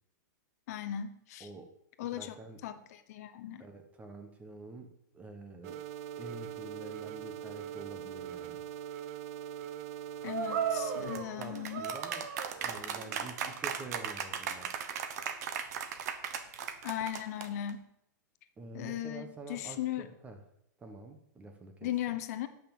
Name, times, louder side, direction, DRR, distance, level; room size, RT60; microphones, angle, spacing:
voice 1, 0.7-1.5 2.0-2.3 2.6-3.6 10.2-11.8 16.8-17.8 18.7-20.1 21.8-22.5, left 12 dB, 55° left, 10 dB, 0.9 m, -37 dB
voice 2, 2.0-2.6 3.6-5.8 6.2-8.6 11.1-12.3 12.6-14.7 18.6-20.4 20.8-22.2, right 2 dB, 15° right, 6 dB, 1.2 m, -47 dB
sound 1, 5.6-11.2, right 10 dB, 40° right, 0.6 m, -42 dB
sound 2, 10.3-17.7, right 7 dB, 60° right, 1.2 m, -36 dB
9.9 x 6.0 x 7.2 m, 0.79 s
hypercardioid pair, 145°, 10 cm